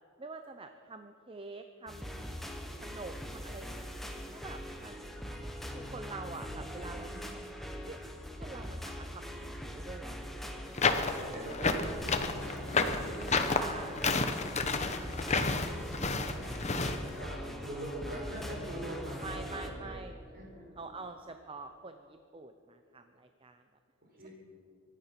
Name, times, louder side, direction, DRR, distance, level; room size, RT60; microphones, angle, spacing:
voice 1, 0.2-2.3 2.8-3.9 4.3-5.3 5.7-7.4 7.9-8.0 8.4-10.7 13.6-14.1 16.1-17.2 19.2-20.1 20.8-23.6, right 3 dB, 25° right, 7 dB, 0.6 m, -47 dB
sound 1, 1.9-19.7, equal, ahead, 1.2 m, -42 dB
voice 2, 6.8-7.4 11.1-13.9 14.4-15.2 16.1-20.0 20.3-20.8 24.1-24.3, right 1 dB, 45° right, -2 dB, 4.9 m, -44 dB
sound 2, 10.7-17.0, left 4 dB, 30° left, 0.9 m, -30 dB
24.0 x 9.9 x 5.9 m, 2.5 s
head